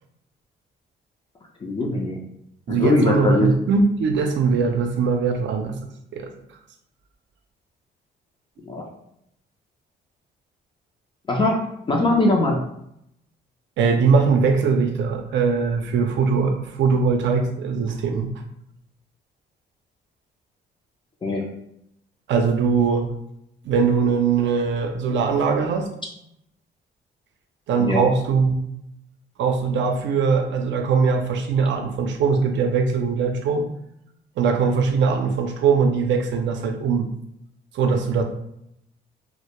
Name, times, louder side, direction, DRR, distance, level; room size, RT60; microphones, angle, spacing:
voice 1, 1.6-2.2 2.7-3.5 8.7-8.8 11.3-11.6 11.9-12.6 21.2-21.4 27.8-28.1, left 2 dB, 25° left, 0 dB, 0.4 m, -21 dB
voice 2, 2.7-5.8 6.1-6.3 13.8-18.3 22.3-23.1 23.6-25.9 27.7-28.6 29.4-33.7 34.4-37.1 37.7-38.2, right 5 dB, 70° right, 5 dB, 0.4 m, -21 dB
2.1 x 2.0 x 2.9 m, 0.78 s
cardioid pair, 90°, 20 cm